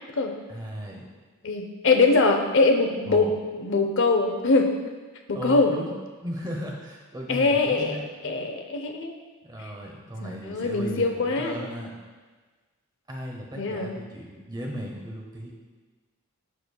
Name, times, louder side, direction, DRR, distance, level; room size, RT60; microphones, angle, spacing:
voice 1, 0.5-1.1 3.1-3.3 5.3-5.9 6.2-8.0 9.4-12.0 13.1-15.5, equal, 20° right, 0 dB, 0.9 m, -36 dB
voice 2, 1.4-3.3 3.6-4.7 5.3-5.7 7.3-8.0 8.2-9.1 10.2-11.5 13.6-13.9, left 3 dB, 55° left, 4 dB, 0.7 m, -22 dB
11.5 x 4.4 x 2.3 m, 1.4 s
head